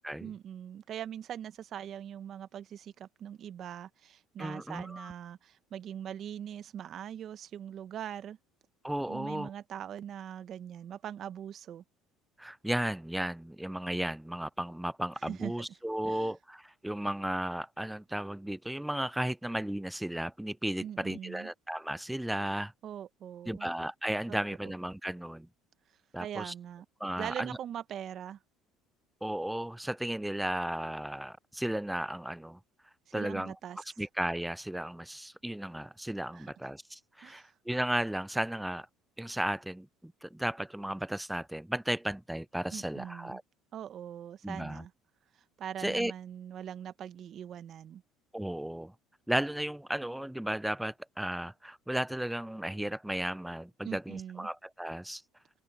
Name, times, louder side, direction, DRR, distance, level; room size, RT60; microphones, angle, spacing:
voice 1, 0.2-8.4 9.1-11.8 15.3-15.5 16.1-16.3 20.8-21.5 22.8-23.7 24.3-24.4 26.2-26.8 27.2-28.4 33.1-33.8 36.3-36.5 37.2-37.5 42.7-43.4 43.7-44.9 45.6-48.0 53.8-54.5, right 9 dB, 50° right, 1.1 m, -42 dB
voice 2, 4.4-5.1 8.8-9.5 12.4-22.7 23.5-25.5 26.1-26.5 27.0-27.5 29.2-32.6 33.1-38.9 39.2-39.9 40.2-43.4 44.4-44.8 45.8-46.1 48.3-48.9 49.3-55.2, right 1 dB, 5° right, 0.5 m, -34 dB
open air
supercardioid pair, 85°, 0 cm